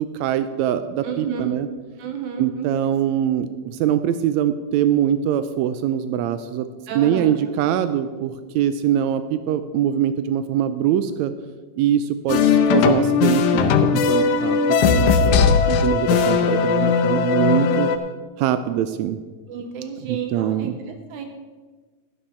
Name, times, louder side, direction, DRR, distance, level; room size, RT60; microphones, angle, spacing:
voice 1, 0.0-1.7 2.4-6.7 6.9-11.3 11.8-13.7 14.1-17.9 18.4-19.2 20.1-20.7, right 10 dB, 90° right, 11 dB, 1.6 m, -23 dB
voice 2, 1.0-1.5 2.0-2.7 6.9-7.4 14.1-15.1 19.5-21.3, right 7 dB, 70° right, 5 dB, 2.2 m, -32 dB
sound 1, 12.3-18.0, left 6 dB, 75° left, 2.0 m, -18 dB
11.5 x 11.5 x 4.4 m, 1.4 s
omnidirectional pair, 3.7 m